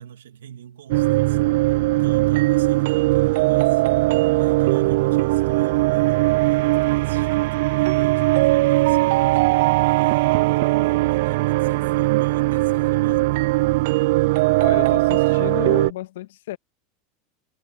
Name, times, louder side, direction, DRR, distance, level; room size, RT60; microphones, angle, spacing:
voice 1, 0.0-3.9 4.4-13.4, right 10 dB, 85° right, 2.3 m, -42 dB
sound 1, 0.9-15.9, right 20 dB, 70° right, 0.4 m, -19 dB
voice 2, 14.6-16.6, left 15 dB, 80° left, 1.8 m, -32 dB
hypercardioid pair, 95°, 0 cm